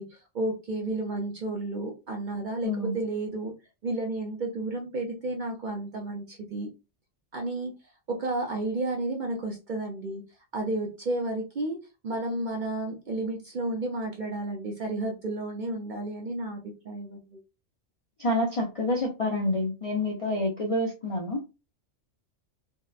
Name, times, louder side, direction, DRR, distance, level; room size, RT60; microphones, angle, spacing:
voice 1, 0.0-3.5 3.8-6.7 7.3-7.7 8.1-10.2 10.5-11.8 12.0-17.4, right 2 dB, 55° right, 0.5 m, -32 dB
voice 2, 2.6-2.9 18.2-21.4, left 1 dB, 50° left, 0.4 m, -28 dB
2.7 x 2.1 x 2.3 m
omnidirectional pair, 1.3 m